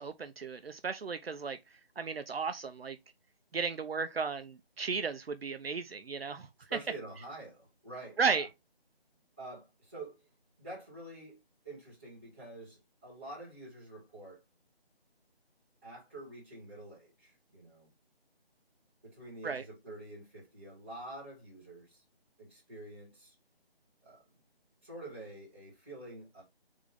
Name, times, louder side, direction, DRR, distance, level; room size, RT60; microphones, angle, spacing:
voice 1, 0.0-1.6 2.0-3.0 3.5-6.5 8.2-8.5 19.4-19.6, right 5 dB, 70° right, 0.6 m, -34 dB
voice 2, 6.7-8.5 9.4-10.3 10.6-11.4 11.6-14.4 15.8-17.9 19.0-22.0 22.4-23.3 24.0-24.2 24.8-26.4, right 2 dB, 10° right, 1.9 m, -47 dB
3.6 x 3.6 x 3.4 m
figure-of-eight pair, 175°, 31 cm